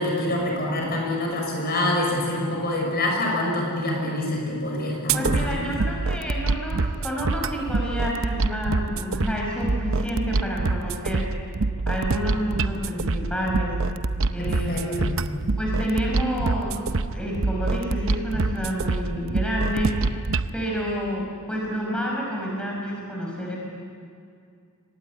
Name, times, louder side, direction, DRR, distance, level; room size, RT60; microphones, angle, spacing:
voice 1, 0.0-5.7 14.4-15.1, left 1 dB, 45° left, 0 dB, 6.4 m, -26 dB
voice 2, 5.1-11.2 11.9-13.8 14.3-15.1 15.6-16.8 17.1-20.0 20.5-23.6, equal, 5° left, -2 dB, 5.7 m, -29 dB
sound 1, 5.1-20.5, right 3 dB, 65° right, 0.7 m, -26 dB
24.0 x 18.5 x 10.0 m, 2.3 s
head